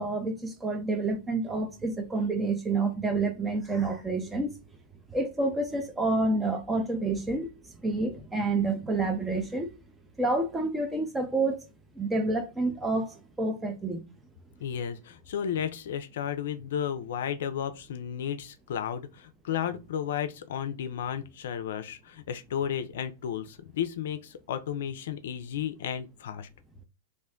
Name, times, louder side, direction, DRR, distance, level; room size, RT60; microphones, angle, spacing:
voice 1, 0.0-4.5 5.1-7.5 7.8-9.7 10.2-11.6 12.0-14.1, right 2 dB, 10° right, 0.6 m, -28 dB
voice 2, 14.6-26.5, left 9 dB, 70° left, 0.4 m, -33 dB
2.5 x 2.1 x 3.6 m
hypercardioid pair, 110°, 0 cm